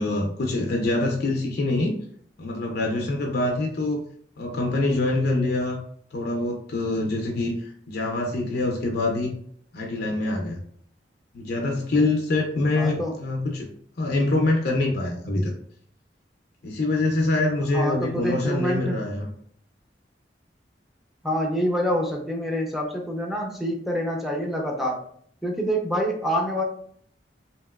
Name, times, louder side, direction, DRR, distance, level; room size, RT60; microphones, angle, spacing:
voice 1, 0.0-1.9 2.4-4.0 4.4-5.8 6.1-9.4 9.7-10.6 11.3-13.7 14.0-15.5 16.6-19.3, left 2 dB, 60° left, 1 dB, 0.5 m, -25 dB
voice 2, 12.8-13.1 17.6-19.1 21.2-25.0 25.4-26.6, equal, ahead, -1 dB, 0.5 m, -26 dB
2.9 x 2.8 x 2.3 m, 0.62 s
head